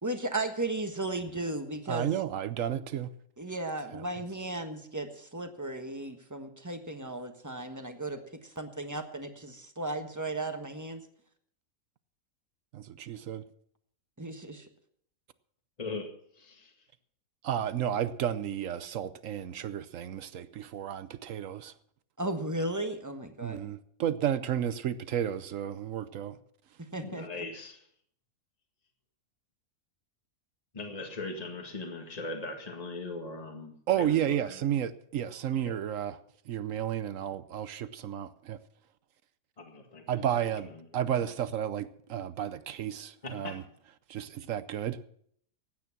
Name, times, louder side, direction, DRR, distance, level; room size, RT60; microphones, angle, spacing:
voice 1, 0.0-2.1 3.4-11.0 14.2-14.7 22.2-23.6 26.8-27.5, right 2 dB, 15° right, 1.2 m, -35 dB
voice 2, 1.9-3.1 3.9-4.0 12.7-13.4 17.4-21.7 23.4-26.4 33.9-36.2 36.5-38.6 40.1-43.6 44.1-45.1, right 10 dB, 65° right, 1.0 m, -32 dB
voice 3, 15.8-16.1 16.3-16.9 27.0-27.9 30.7-34.5 35.6-35.7 39.6-40.8 43.2-43.6, left 3 dB, 25° left, 1.9 m, -40 dB
16.0 x 9.6 x 5.9 m
omnidirectional pair, 1.6 m